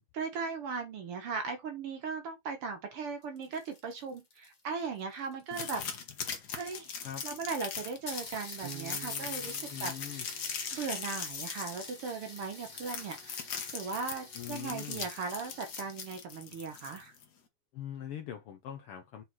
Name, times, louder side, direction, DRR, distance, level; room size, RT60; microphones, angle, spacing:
voice 1, 0.1-5.8 6.5-6.9 7.2-10.3 10.7-17.2, right 5 dB, 60° right, 1.8 m, -38 dB
sound 1, 3.1-5.8 6.7-6.8 7.1-7.2 7.5-7.6 8.1-16.2, left 3 dB, 30° left, 0.8 m, -48 dB
sound 2, 5.5-17.2, left 6 dB, 55° left, 1.1 m, -40 dB
Bass guitar, 8.6-11.6, right 11 dB, 90° right, 2.6 m, -50 dB
voice 2, 9.7-10.3 14.3-15.1 17.7-19.2, left 10 dB, 70° left, 1.3 m, -42 dB
6.3 x 3.9 x 4.0 m
omnidirectional pair, 3.4 m